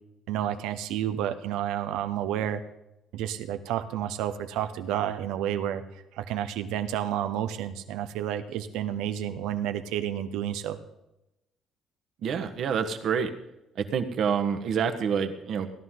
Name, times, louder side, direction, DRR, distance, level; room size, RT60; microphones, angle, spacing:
voice 1, 0.3-2.6 3.1-5.8 6.1-10.8, right 10 dB, 80° right, 9 dB, 0.9 m, -30 dB
voice 2, 12.2-13.3 13.7-15.7, right 7 dB, 65° right, 7 dB, 1.3 m, -27 dB
17.0 x 11.0 x 3.8 m, 0.90 s
supercardioid pair, 75°, 0 cm